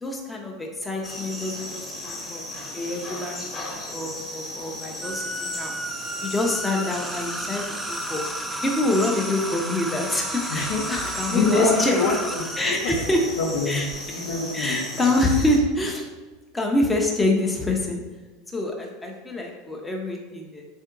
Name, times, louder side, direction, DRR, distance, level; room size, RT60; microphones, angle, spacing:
voice 1, 0.0-2.5 2.7-5.7 6.2-8.2 8.6-12.0 12.6-13.2 13.7-13.9 14.5-16.1 16.5-18.0 18.5-20.6, left 1 dB, 10° left, 0 dB, 0.7 m, -26 dB
sound 1, 1.0-15.6, left 1 dB, 25° left, 1.1 m, -36 dB
sound 2, 5.0-14.0, right 2 dB, 10° right, 0.3 m, -33 dB
voice 2, 10.5-10.8 11.3-13.8 14.1-15.2, left 3 dB, 65° left, 0 dB, 0.8 m, -26 dB
3.6 x 2.7 x 3.7 m, 1.3 s
hypercardioid pair, 85°, 0 cm